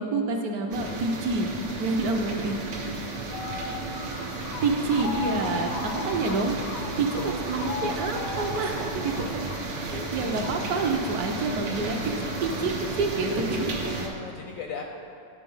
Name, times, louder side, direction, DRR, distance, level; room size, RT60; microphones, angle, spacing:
voice 1, 0.0-2.6 4.6-5.7 6.0-9.4 9.7-12.0 12.4-13.7, right 3 dB, 65° right, 3 dB, 1.1 m, -28 dB
sound 1, 0.7-14.1, right 3 dB, 90° right, 1.6 m, -33 dB
sound 2, 3.3-13.7, left 3 dB, 90° left, 1.7 m, -38 dB
voice 2, 10.2-10.5 14.0-14.8, left 6 dB, 70° left, 2 dB, 0.8 m, -39 dB
10.5 x 3.9 x 5.4 m, 2.4 s
omnidirectional pair, 1.9 m